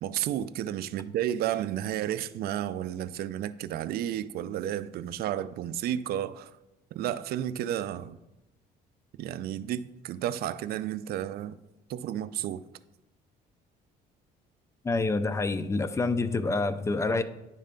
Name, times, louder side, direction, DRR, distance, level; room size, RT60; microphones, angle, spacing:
voice 1, 0.0-6.5 6.9-8.2 9.2-11.6 11.9-12.6, right 11 dB, 65° right, 0.4 m, -32 dB
voice 2, 14.8-17.2, left 3 dB, 15° left, 0.4 m, -27 dB
9.7 x 3.3 x 5.1 m
cardioid pair, 110°, 17 cm